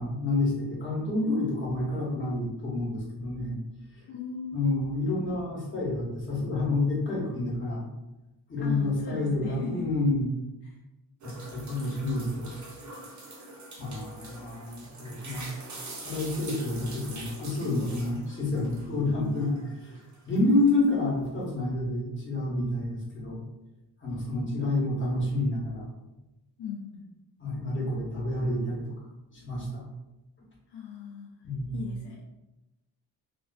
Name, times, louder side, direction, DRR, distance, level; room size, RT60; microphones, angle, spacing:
voice 1, 0.0-3.6 4.5-7.9 8.5-10.3 11.2-12.5 13.8-15.4 16.0-20.0 20.3-23.4 24.0-25.9 27.4-28.9 29.3-29.8 31.4-31.9, left 2 dB, 30° left, -5 dB, 0.8 m, -29 dB
voice 2, 4.1-4.9 8.6-10.0 10.6-10.7 24.1-24.7 26.6-27.2 30.7-31.3 31.7-32.2, left 6 dB, 70° left, -2 dB, 0.5 m, -39 dB
sound 1, 11.2-19.0 19.4-21.0, right 2 dB, 45° right, 0.6 m, -44 dB
2.3 x 2.3 x 2.2 m, 0.99 s
wide cardioid pair, 135°, 43 cm